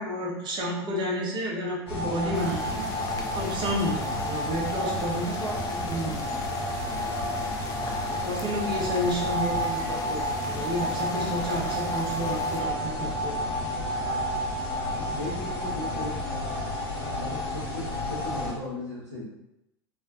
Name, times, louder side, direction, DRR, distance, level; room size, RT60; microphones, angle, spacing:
voice 1, 0.0-2.9 3.3-6.3 8.1-13.4, equal, 35° right, -3 dB, 0.7 m, -31 dB
sound 1, 1.9-18.5, left 1 dB, 60° left, 0.7 m, -30 dB
sound 2, 2.3-12.6, left 3 dB, 25° left, 0.4 m, -40 dB
voice 2, 14.9-16.5 17.1-19.3, left 2 dB, 85° right, -9 dB, 0.9 m, -37 dB
2.6 x 2.2 x 2.2 m, 0.88 s
figure-of-eight pair, 85°, 14 cm